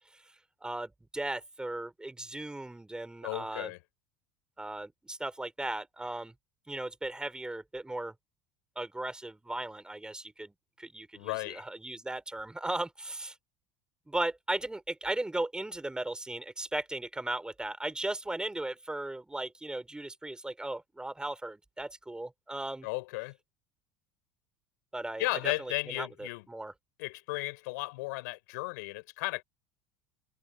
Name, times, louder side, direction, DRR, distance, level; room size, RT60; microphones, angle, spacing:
voice 1, 0.6-3.7 4.6-6.3 6.7-8.1 8.8-13.3 14.1-22.9 24.9-26.7, right 2 dB, 10° right, 3.9 m, -37 dB
voice 2, 3.2-3.8 11.2-11.6 22.8-23.4 25.2-26.4 27.0-29.4, left 24 dB, 80° left, 5.2 m, -35 dB
supercardioid pair, 95°, 9 cm